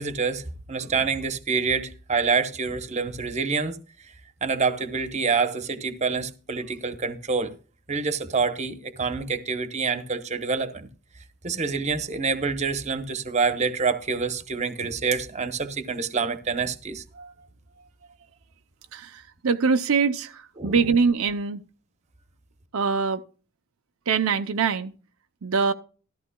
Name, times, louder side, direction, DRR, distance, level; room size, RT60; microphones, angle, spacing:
voice 1, 0.0-4.1 4.4-7.5 7.9-10.9 11.4-17.0 20.6-20.9, right 4 dB, 30° right, 0.9 m, -27 dB
voice 2, 18.9-21.6 22.7-23.2 24.1-24.9 25.4-25.7, right 5 dB, 75° right, 0.6 m, -23 dB
14.0 x 13.0 x 2.2 m
head